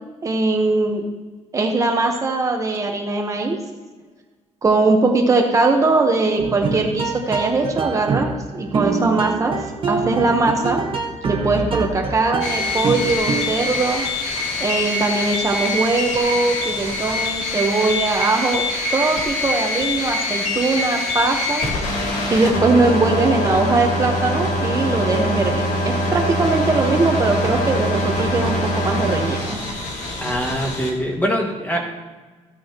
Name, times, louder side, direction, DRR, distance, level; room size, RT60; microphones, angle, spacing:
voice 1, 0.2-1.1 1.5-3.6 4.6-10.8 11.2-14.0 14.6-21.7 22.3-29.6, right 3 dB, 25° right, 2 dB, 1.1 m, -20 dB
sound 1, 6.4-13.7, right 4 dB, 50° right, 1.4 m, -25 dB
sound 2, 12.4-30.9, left 1 dB, 85° left, 2.1 m, -24 dB
voice 2, 30.2-31.9, equal, 15° left, 0 dB, 2.0 m, -23 dB
15.0 x 9.4 x 3.0 m, 1.3 s
cardioid pair, 155°, 12 cm